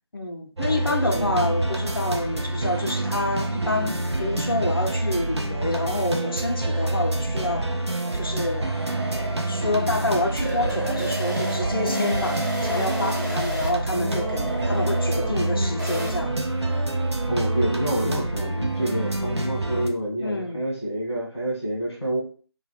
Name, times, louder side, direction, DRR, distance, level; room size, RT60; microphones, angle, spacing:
voice 1, 0.1-8.9 9.5-16.5 20.2-20.6, left 2 dB, 55° left, 0.4 m, -28 dB
sound 1, 0.6-19.9, right 2 dB, 80° right, 0.5 m, -27 dB
voice 2, 1.0-1.5 17.3-22.2, right 1 dB, ahead, 0.6 m, -28 dB
sound 2, 7.3-16.1, equal, 45° right, 1.1 m, -33 dB
2.1 x 2.0 x 3.2 m
figure-of-eight pair, 165°, 14 cm